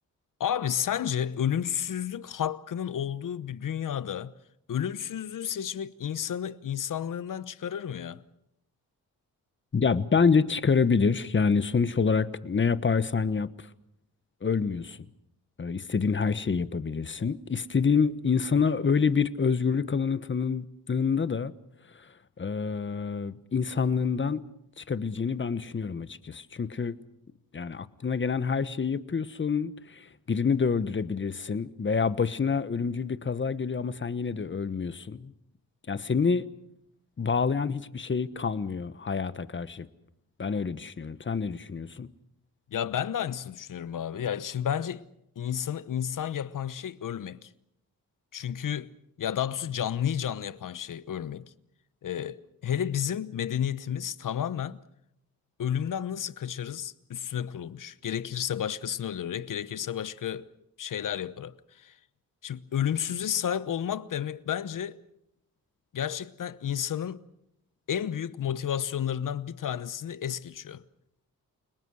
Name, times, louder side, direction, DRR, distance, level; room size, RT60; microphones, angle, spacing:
voice 1, 0.4-4.3 4.7-8.2 42.7-45.0 45.4-47.5 48.3-48.9 49.2-51.5 52.0-54.8 55.6-60.5 60.8-61.9 62.4-65.0 65.9-67.2 67.9-70.8, left 9 dB, 65° left, 1.1 m, -31 dB
voice 2, 9.7-13.5 14.4-15.0 15.6-21.5 22.4-24.4 24.8-26.9 27.5-35.3 35.9-36.5 37.2-39.9 40.4-42.1, left 5 dB, 35° left, 1.2 m, -27 dB
30.0 x 19.0 x 6.4 m
cardioid pair, 80°, 35 cm